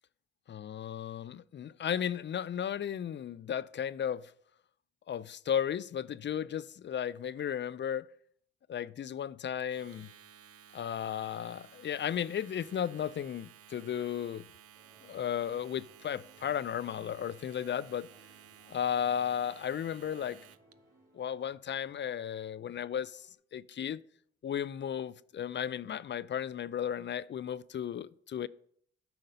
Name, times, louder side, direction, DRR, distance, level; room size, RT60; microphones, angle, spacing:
voice 1, 0.5-4.3 5.1-8.1 8.7-10.1 10.7-14.4 15.0-18.1 18.7-20.4 21.1-24.0 24.4-28.5, left 9 dB, 40° left, 0.4 m, -35 dB
Domestic sounds home sounds, 9.6-20.7, right 9 dB, 50° right, 0.6 m, -56 dB
sound 1, 14.7-23.3, right 2 dB, 85° right, 3.2 m, -65 dB
9.1 x 5.4 x 5.4 m
supercardioid pair, 55°, 30 cm